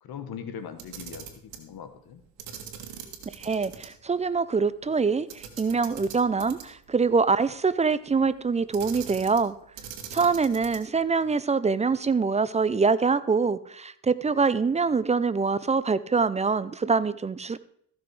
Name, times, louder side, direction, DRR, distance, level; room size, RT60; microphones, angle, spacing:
voice 1, 0.0-2.2, left 7 dB, 60° left, 9 dB, 1.5 m, -40 dB
Camera, 0.7-1.7 2.4-3.9 4.2-4.3 5.3-6.9 8.7-9.5 9.8-11.0, right 8 dB, 85° right, 1.7 m, -41 dB
voice 2, 3.4-9.5 10.1-17.6, right 4 dB, 15° right, 16 dB, 0.4 m, -24 dB
14.5 x 6.2 x 4.8 m, 0.66 s
supercardioid pair, 85°, 41 cm